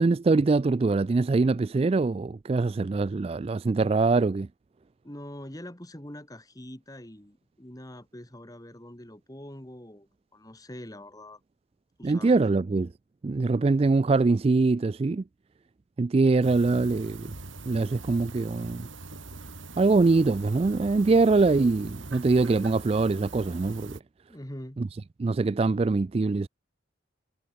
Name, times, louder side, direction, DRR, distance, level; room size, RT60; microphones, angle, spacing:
voice 1, 0.0-4.5 12.0-12.9 13.2-15.2 16.0-17.3 17.7-18.9 19.8-24.0 25.2-26.5, right 3 dB, 30° right, 0.3 m, -23 dB
voice 2, 5.0-11.4 12.0-12.4 24.3-24.8, left 1 dB, 20° left, 2.3 m, -44 dB
sound 1, 16.4-24.0, right 3 dB, 80° right, 2.7 m, -43 dB
head